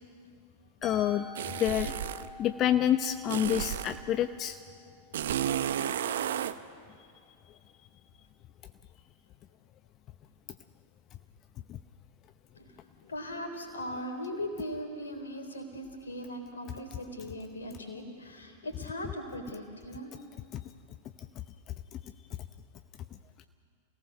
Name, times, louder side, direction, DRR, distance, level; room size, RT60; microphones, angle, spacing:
voice 1, 0.8-1.2 1.6-1.9 2.4-4.6 11.7-11.8 21.9-22.0, left 11 dB, 35° left, 10 dB, 0.7 m, -27 dB
Musical instrument, 0.8-6.7, left 2 dB, 10° right, 4.3 m, -49 dB
sound 1, 1.4-2.3 3.3-4.0 5.1-6.6, right 10 dB, 65° right, 0.8 m, -32 dB
voice 2, 13.1-20.1, equal, 80° left, 5 dB, 3.8 m, -39 dB
28.0 x 18.0 x 6.5 m, 2.4 s
figure-of-eight pair, 95°, 0 cm